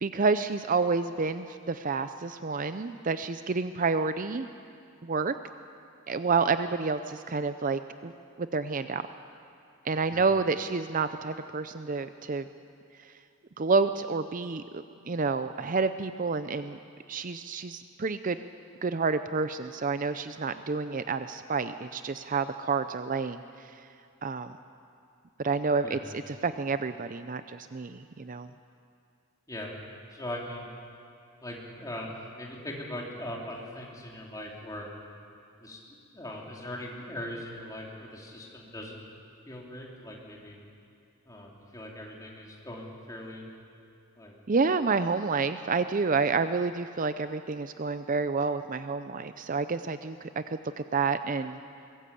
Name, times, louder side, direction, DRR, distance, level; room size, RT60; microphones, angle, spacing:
voice 1, 0.0-4.5 5.0-5.3 6.1-8.1 8.4-9.1 9.8-12.5 13.0-13.1 13.6-16.8 17.1-18.4 18.8-23.8 24.2-24.5 25.4-26.0 26.3-28.5 44.5-50.6 50.9-51.6, right 4 dB, 35° right, 11 dB, 0.5 m, -29 dB
voice 2, 25.8-26.2 29.5-29.8 30.1-30.7 31.4-34.9 35.6-35.8 36.1-39.0 39.5-40.6 41.3-43.5 44.2-44.3, left 1 dB, 15° left, -2 dB, 3.4 m, -40 dB
23.0 x 20.0 x 8.4 m, 2.5 s
head